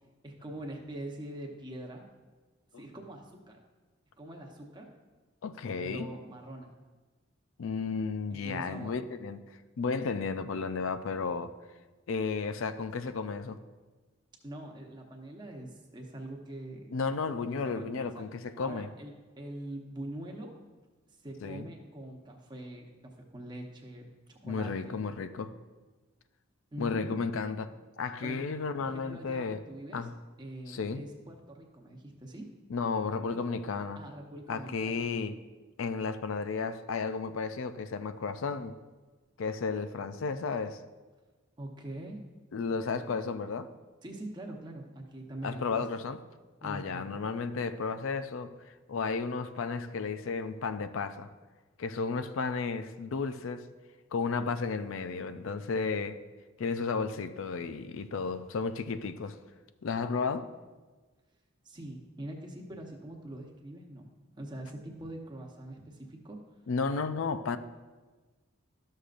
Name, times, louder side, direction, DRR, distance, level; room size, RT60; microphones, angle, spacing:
voice 1, 0.2-2.0 2.8-3.6 4.2-4.9 5.8-6.7 8.3-8.9 14.4-16.9 17.5-18.2 18.6-20.5 21.1-24.9 26.7-27.1 28.2-28.4 28.8-30.1 30.4-32.5 34.0-35.0 41.6-42.2 42.9-43.1 44.0-46.0 46.6-47.2 61.6-64.1 64.4-66.4, right 1 dB, 20° right, 0.9 m, -43 dB
voice 2, 5.4-6.1 7.6-9.5 9.8-11.5 12.1-13.6 16.9-18.9 21.4-21.7 24.4-25.5 26.8-29.6 29.9-30.1 30.7-31.0 32.7-34.0 34.5-35.4 35.8-38.8 39.4-40.8 42.5-43.7 45.4-46.2 46.6-51.3 51.8-53.7 54.1-56.2 56.6-59.4 59.8-60.5 66.7-67.6, left 4 dB, 80° left, 0.4 m, -33 dB
13.0 x 6.6 x 2.5 m
head